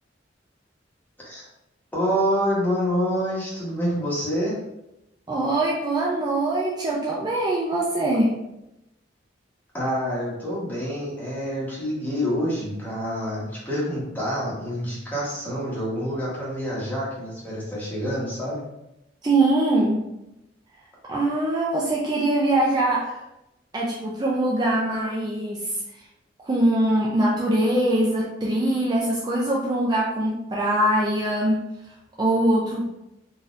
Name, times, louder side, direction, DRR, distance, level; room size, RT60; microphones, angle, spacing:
voice 1, 1.9-4.6 9.7-18.6, equal, 10° left, -7 dB, 1.2 m, -27 dB
voice 2, 5.3-8.3 19.2-20.0 21.1-23.2 23.7-25.7 26.4-31.6 32.2-32.8, right 1 dB, 20° right, -4 dB, 0.4 m, -22 dB
4.0 x 2.7 x 2.5 m, 0.89 s
head